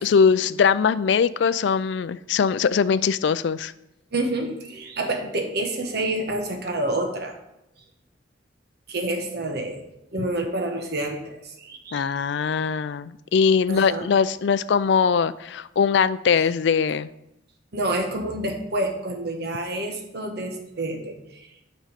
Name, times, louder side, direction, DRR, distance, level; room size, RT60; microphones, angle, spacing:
voice 1, 0.0-3.7 11.9-17.1, left 6 dB, 65° left, 16 dB, 0.3 m, -21 dB
voice 2, 4.1-7.4 8.9-9.8 10.1-12.1 13.7-14.1 16.4-16.5 17.7-21.5, right 1 dB, 55° right, 4 dB, 1.3 m, -28 dB
8.9 x 5.2 x 5.1 m, 0.88 s
head